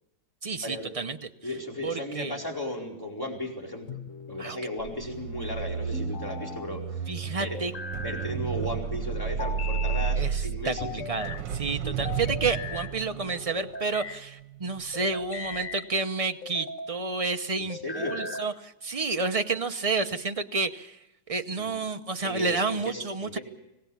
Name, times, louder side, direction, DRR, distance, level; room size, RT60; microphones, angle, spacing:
voice 1, 0.4-1.2 1.8-2.4 4.4-4.6 7.1-7.7 10.2-21.0 21.3-23.4, right 4 dB, 35° right, 7 dB, 0.5 m, -30 dB
voice 2, 1.4-4.0 4.3-6.8 7.4-7.6 7.9-11.0 11.8-12.0 17.6-18.2 21.5-21.8 22.2-23.4, left 1 dB, 10° left, -1 dB, 4.6 m, -35 dB
sound 1, 3.9-4.6 5.9-6.7 7.5-8.3 9.4-10.2 10.8-11.4 12.0-12.9 13.5-14.2 14.9-15.9 16.4-16.9 17.7-18.5, left 5 dB, 50° left, 1.2 m, -38 dB
sound 2, 4.8-15.1 15.5-15.7, right 7 dB, 80° right, 1.6 m, -33 dB
25.5 x 18.5 x 7.2 m, 0.91 s
omnidirectional pair, 1.9 m